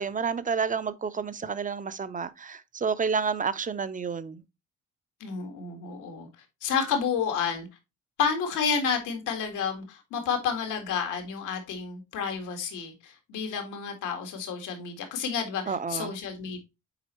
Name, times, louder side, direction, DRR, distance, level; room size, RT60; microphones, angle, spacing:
voice 1, 0.0-4.4 15.7-16.1, right 5 dB, 25° right, 0.6 m, -30 dB
voice 2, 5.2-6.3 6.6-7.7 8.2-16.6, left 6 dB, 85° left, 1.9 m, -30 dB
8.9 x 4.1 x 3.0 m
cardioid pair, 90°, 30 cm